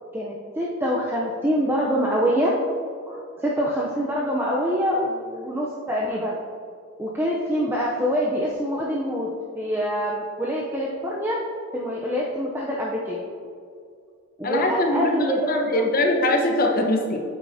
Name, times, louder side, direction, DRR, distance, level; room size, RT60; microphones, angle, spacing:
voice 1, 0.1-2.5 3.1-6.3 7.0-9.3 9.5-11.4 11.7-13.2 14.4-15.9, equal, 10° right, -4 dB, 0.6 m, -25 dB
voice 2, 14.4-17.2, left 1 dB, 40° left, 1 dB, 1.0 m, -22 dB
8.6 x 8.4 x 2.7 m, 2.3 s
head